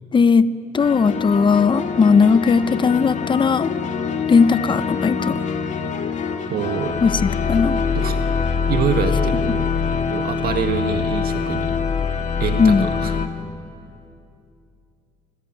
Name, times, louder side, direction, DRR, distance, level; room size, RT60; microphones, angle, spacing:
voice 1, 0.1-0.5 0.7-3.7 4.3-5.4 7.0-7.8 12.6-12.9, left 5 dB, 30° left, 14 dB, 0.9 m, -17 dB
sound 1, 0.8-13.3, left 5 dB, 45° left, 2.6 m, -24 dB
voice 2, 6.5-7.0 7.9-8.2 8.7-9.7 10.1-11.7 12.4-13.1, right 7 dB, 65° right, 6 dB, 1.9 m, -25 dB
25.5 x 24.5 x 9.3 m, 2.6 s
cardioid pair, 110°, 17 cm